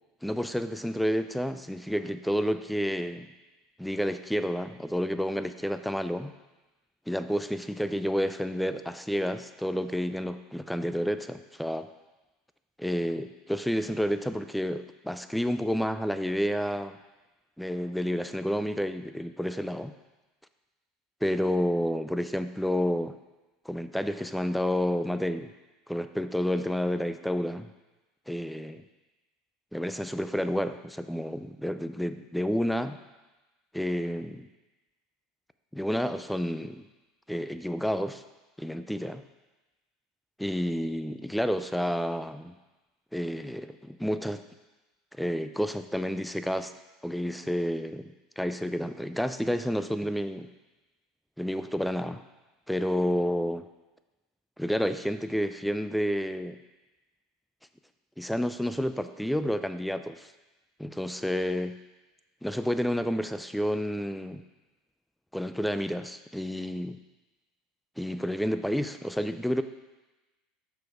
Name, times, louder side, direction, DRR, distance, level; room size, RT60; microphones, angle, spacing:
voice 1, 0.2-3.3 3.8-6.3 7.1-11.9 12.8-17.0 17.6-19.9 21.2-23.2 23.7-25.5 25.9-27.7 28.3-28.9 29.7-33.0 33.7-34.5 35.7-36.8 37.3-38.2 38.6-39.2 40.4-42.5 43.1-44.4 45.2-46.7 47.0-50.5 51.4-52.2 52.7-53.7 54.6-56.6 58.2-60.3 60.8-61.7 62.4-64.4 65.3-67.0 68.0-69.6, equal, ahead, 10 dB, 0.4 m, -30 dB
6.1 x 4.8 x 4.6 m, 1.1 s
hypercardioid pair, 85°, 0 cm